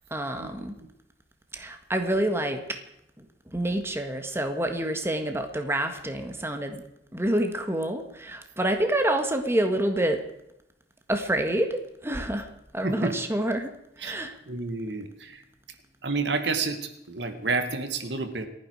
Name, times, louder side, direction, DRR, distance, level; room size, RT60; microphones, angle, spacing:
voice 1, 0.1-0.7 1.5-2.8 3.2-6.8 7.1-10.2 11.1-14.4, right 1 dB, 15° right, 5 dB, 1.7 m, -28 dB
voice 2, 14.5-15.4 16.0-18.5, right 3 dB, 80° right, 8 dB, 2.1 m, -29 dB
28.5 x 10.0 x 4.8 m, 0.81 s
head